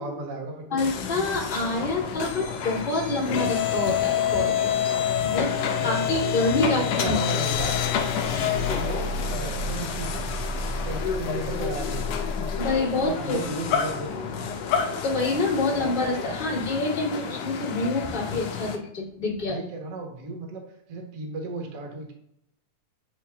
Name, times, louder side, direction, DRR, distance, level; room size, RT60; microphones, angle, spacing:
voice 1, 0.0-0.8 5.4-7.8 8.1-10.5 10.8-12.3 12.9-14.5 19.4-20.6 20.9-22.1, right 2 dB, 85° right, 1 dB, 0.9 m, -35 dB
voice 2, 0.7-5.5 5.8-7.1 7.6-7.7 12.6-13.4 15.0-19.5, left 2 dB, 20° left, -6 dB, 1.5 m, -27 dB
sound 1, 0.8-18.8, left 7 dB, 85° left, 1.4 m, -28 dB
9.3 x 3.2 x 3.4 m, 0.77 s
omnidirectional pair, 3.9 m